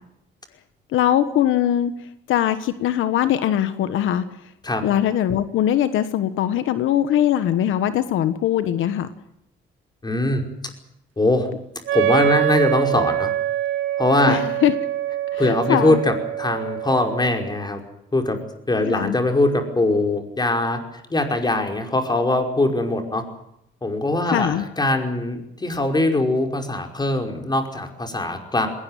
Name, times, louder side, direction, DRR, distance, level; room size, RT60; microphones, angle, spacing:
voice 1, 0.9-1.9 2.3-4.2 4.8-9.1 14.3-14.7 15.3-16.0 18.8-19.2 24.3-24.7, left 11 dB, 85° left, 12 dB, 1.3 m, -21 dB
voice 2, 10.0-10.4 11.2-11.5 11.9-13.3 14.0-14.4 15.4-17.8 18.1-18.4 18.7-20.8 21.1-23.2 23.8-28.7, left 2 dB, 20° left, 4 dB, 5.3 m, -21 dB
Wind instrument woodwind instrument, 11.9-17.5, right 12 dB, 85° right, 2.2 m, -24 dB
20.5 x 18.5 x 9.3 m, 0.80 s
cardioid pair, 90°, 20 cm